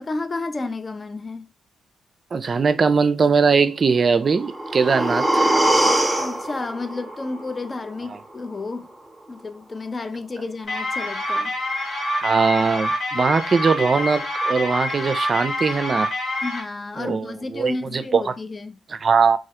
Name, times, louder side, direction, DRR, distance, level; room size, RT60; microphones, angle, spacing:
voice 1, 0.0-1.4 6.2-8.9 9.3-11.5 16.4-18.8, left 3 dB, 40° left, 0.4 m, -31 dB
voice 2, 2.3-5.5 12.2-16.1 17.0-18.3 18.9-19.4, right 5 dB, 50° right, 0.4 m, -20 dB
sound 1, 4.2-8.2 8.6-8.7, right 1 dB, 5° right, 0.8 m, -23 dB
sound 2, 10.7-16.6, left 1 dB, 55° left, 1.6 m, -26 dB
3.1 x 2.4 x 2.7 m
hypercardioid pair, 40°, 0 cm